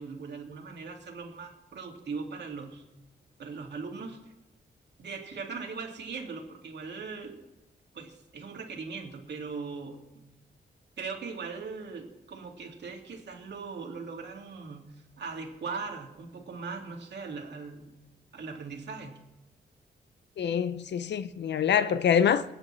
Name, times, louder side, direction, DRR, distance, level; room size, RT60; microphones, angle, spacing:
voice 1, 0.0-2.8 3.4-4.2 5.0-7.4 7.9-10.0 11.0-17.9 18.3-19.2, right 4 dB, 70° right, 2.2 m, -39 dB
voice 2, 20.4-22.4, left 8 dB, 75° left, 0.6 m, -25 dB
25.5 x 9.1 x 3.3 m
wide cardioid pair, 110°, 18 cm